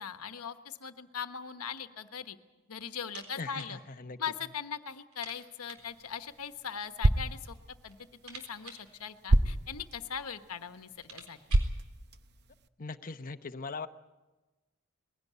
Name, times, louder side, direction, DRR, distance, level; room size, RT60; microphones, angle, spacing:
voice 1, 0.0-2.4 2.7-3.8 4.2-7.6 7.8-8.0 8.2-11.4, left 7 dB, 80° left, 9 dB, 1.2 m, -40 dB
sound 1, 3.0-3.8 4.0-4.1 4.5-4.6 5.1-6.0 6.9-7.5 7.8-9.8 10.5-10.6 10.8-11.8, right 4 dB, 75° right, 4.0 m, -51 dB
voice 2, 3.4-4.2 12.8-13.9, left 4 dB, 40° left, 9 dB, 0.9 m, -40 dB
sound 2, 5.8-12.7, right 1 dB, 50° right, 0.8 m, -32 dB
21.0 x 16.5 x 9.4 m, 1.2 s
head